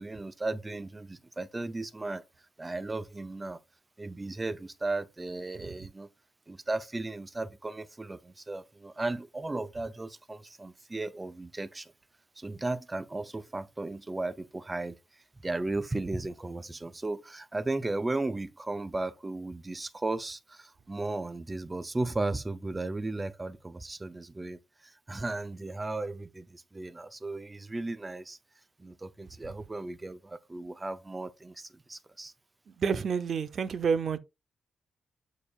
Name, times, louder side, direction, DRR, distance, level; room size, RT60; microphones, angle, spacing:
voice 1, 0.0-2.2 2.6-3.6 4.0-6.1 6.5-11.9 12.4-15.0 15.4-28.4 28.8-32.3, right 2 dB, 20° right, 0.6 m, -35 dB
voice 2, 32.8-34.2, right 6 dB, 60° right, 0.7 m, -28 dB
7.1 x 6.4 x 2.4 m
cardioid pair, 100°, 0 cm